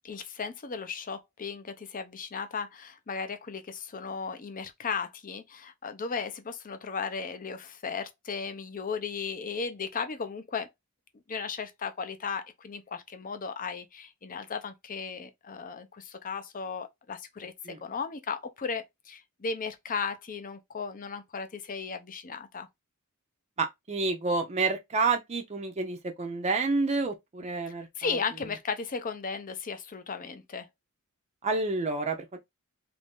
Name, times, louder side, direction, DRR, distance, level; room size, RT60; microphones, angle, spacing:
voice 1, 0.0-10.7 11.3-17.5 17.8-22.7 28.0-30.7, left 5 dB, 40° left, 0.6 m, -36 dB
voice 2, 23.6-28.2 31.4-32.4, right 3 dB, 30° right, 0.5 m, -29 dB
3.1 x 2.6 x 3.5 m
head